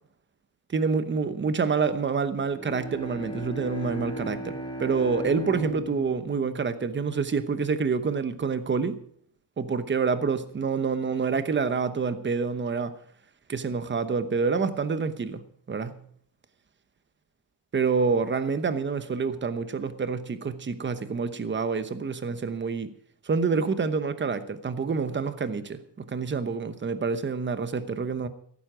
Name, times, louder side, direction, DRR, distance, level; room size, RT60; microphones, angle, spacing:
voice 1, 0.7-9.0 9.6-12.9 13.5-16.0 17.7-22.9 23.2-28.3, right 5 dB, 25° right, 0.9 m, -27 dB
Bowed string instrument, 2.4-7.8, equal, 10° left, 3.3 m, -37 dB
14.5 x 12.5 x 5.0 m
wide cardioid pair, 170°, 42 cm